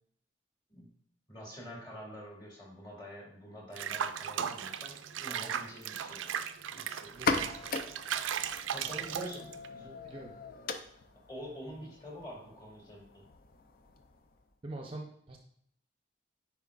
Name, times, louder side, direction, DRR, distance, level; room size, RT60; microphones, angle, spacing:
voice 1, 1.3-6.4 6.7-7.6 8.7-9.5 9.7-10.0 11.3-13.3, equal, 20° left, -3 dB, 2.1 m, -47 dB
Water / Bathtub (filling or washing), 3.8-9.7, right 8 dB, 85° right, 0.4 m, -37 dB
sound 1, 7.1-14.5, left 4 dB, 50° left, 0.5 m, -39 dB
voice 2, 7.1-7.5 9.1-9.4 10.0-10.3 14.6-15.4, right 1 dB, 30° right, 2 dB, 0.6 m, -42 dB
9.3 x 4.5 x 2.4 m, 0.69 s
head